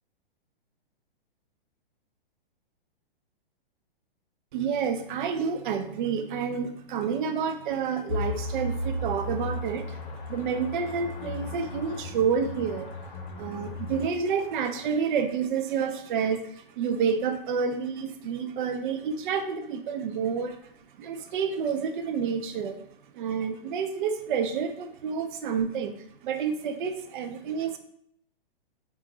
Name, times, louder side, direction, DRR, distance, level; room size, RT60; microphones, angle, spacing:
voice 1, 4.5-10.0 10.3-13.0 13.4-20.7 21.0-22.9 23.1-27.8, right 6 dB, 55° right, 7 dB, 0.5 m, -29 dB
sound 1, 8.1-14.9, left 2 dB, 35° left, 0.7 m, -35 dB
3.6 x 2.3 x 3.0 m, 0.70 s
hypercardioid pair, 130°, 29 cm